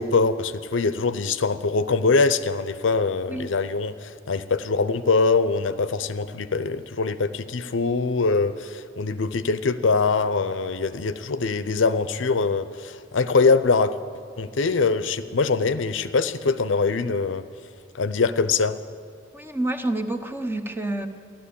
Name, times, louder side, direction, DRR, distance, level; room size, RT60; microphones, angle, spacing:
voice 1, 0.0-14.0 14.4-17.4 17.9-18.8, left 4 dB, 80° left, 13 dB, 0.6 m, -23 dB
voice 2, 19.3-21.1, right 1 dB, 10° right, 7 dB, 0.8 m, -28 dB
14.0 x 12.0 x 8.6 m, 2.2 s
head